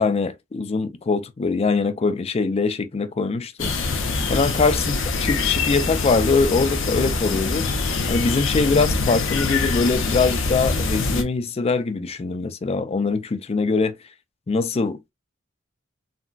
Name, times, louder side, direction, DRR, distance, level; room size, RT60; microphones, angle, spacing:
voice 1, 0.0-3.7 4.3-7.7 8.1-14.0 14.5-15.1, left 4 dB, 30° left, 0.4 m, -22 dB
sound 1, 3.6-11.2, left 3 dB, 65° left, 0.6 m, -24 dB
3.8 x 2.2 x 2.3 m
head